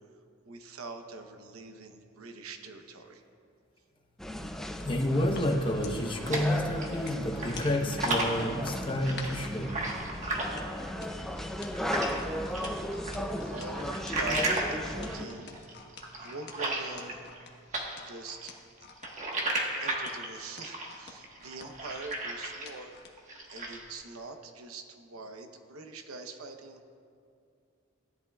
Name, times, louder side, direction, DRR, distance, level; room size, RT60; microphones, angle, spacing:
voice 1, 0.4-3.2 12.0-15.7 15.9-17.4 18.1-18.5 19.8-23.1 23.5-26.8, right 3 dB, 90° right, 6 dB, 0.9 m, -44 dB
sound 1, 4.2-15.3, equal, ahead, 0.4 m, -36 dB
sound 2, 4.8-9.5 10.3-23.1 23.6-23.7, left 5 dB, 50° left, 1.2 m, -48 dB
voice 2, 4.8-10.0, left 1 dB, 25° left, 2 dB, 0.9 m, -30 dB
sound 3, 5.8-7.1 7.4-12.2 12.5-17.4 17.7-22.8 23.2-23.9, right 2 dB, 35° right, 1.3 m, -34 dB
16.5 x 11.0 x 2.3 m, 2.4 s
head